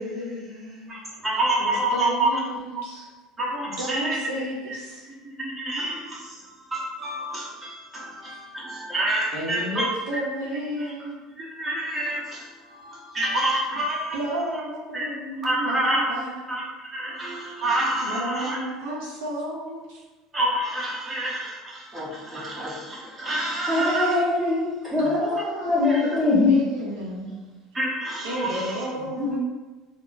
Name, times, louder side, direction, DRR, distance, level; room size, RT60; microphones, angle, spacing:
voice 1, 0.0-0.9 1.6-3.1 3.7-5.1 9.3-11.2 14.1-16.5 18.0-20.0 23.8-24.7 25.0-25.9 26.5-27.2 28.2-29.4, right 1 dB, 85° right, -3 dB, 0.7 m, -32 dB
voice 2, 0.9-2.4 3.4-4.2 4.7-4.8 5.0-9.9 10.8-10.9 11.4-14.2 14.9-15.1 15.4-16.1 16.5-16.6 16.9-18.6 18.9-19.0 20.3-24.2 25.8-26.2 27.7-28.9, right 1 dB, 20° right, -6 dB, 1.0 m, -28 dB
voice 3, 23.7-25.3 25.6-26.6 27.1-27.5 29.0-29.4, left 3 dB, ahead, -10 dB, 1.4 m, -23 dB
3.6 x 2.0 x 2.6 m, 1.2 s
supercardioid pair, 110°, 0 cm